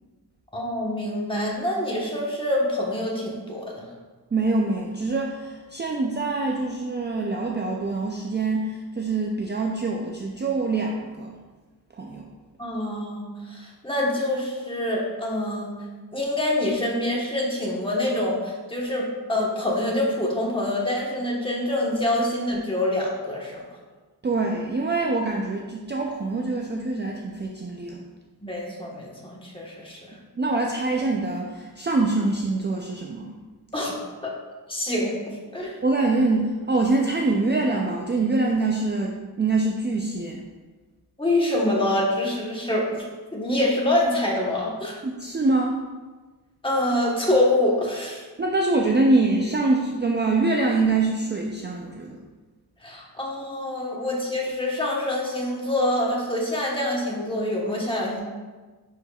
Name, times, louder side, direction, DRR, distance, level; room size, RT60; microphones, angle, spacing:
voice 1, 0.5-3.9 12.6-15.7 16.1-23.6 28.4-30.1 33.7-34.0 34.2-34.3 34.7-35.8 41.2-43.0 43.3-45.0 46.6-48.2 52.8-58.2, left 1 dB, 15° left, -3 dB, 1.2 m, -26 dB
voice 2, 4.3-11.4 11.9-12.3 24.2-28.0 30.4-33.4 35.8-40.4 45.0-45.8 48.4-52.2, right 3 dB, 25° right, 0 dB, 0.4 m, -24 dB
10.5 x 4.5 x 2.3 m, 1.3 s
wide cardioid pair, 145°, 40 cm